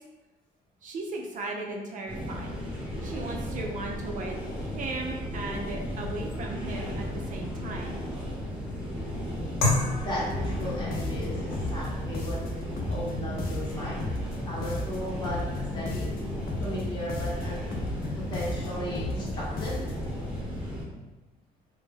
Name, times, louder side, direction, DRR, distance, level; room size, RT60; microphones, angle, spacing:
voice 1, 0.8-2.6 3.0-8.0, right 2 dB, 50° right, 0 dB, 0.5 m, -37 dB
sound 1, 2.1-20.8, equal, 5° right, 0.8 m, -35 dB
sound 2, 9.6-18.4, left 2 dB, 80° left, 0.8 m, -36 dB
voice 2, 10.0-12.4 12.9-14.0 14.4-16.1 16.6-17.6 18.3-19.8, equal, 25° left, -8 dB, 0.8 m, -35 dB
sound 3, 10.3-20.2, left 2 dB, 60° left, 0.4 m, -35 dB
2.2 x 2.1 x 3.2 m, 1.1 s
cardioid pair, 110°, 17 cm